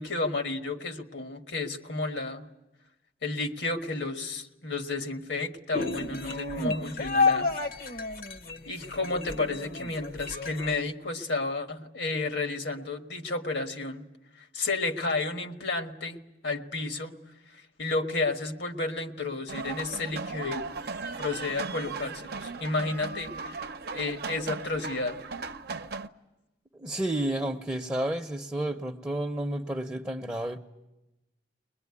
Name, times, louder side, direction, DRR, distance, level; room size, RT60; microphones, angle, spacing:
voice 1, 0.0-2.4 3.2-7.5 8.7-14.1 14.4-17.1 17.5-20.6 21.2-23.6 23.9-25.2, left 3 dB, 80° left, 6 dB, 1.6 m, -32 dB
sound 1, 5.7-10.8, left 4 dB, 55° left, 1.0 m, -30 dB
sound 2, 19.5-26.1, right 4 dB, 60° right, 0.8 m, -37 dB
voice 2, 26.7-30.6, right 1 dB, 15° right, 3 dB, 0.8 m, -31 dB
21.5 x 21.5 x 9.7 m, 1.0 s
head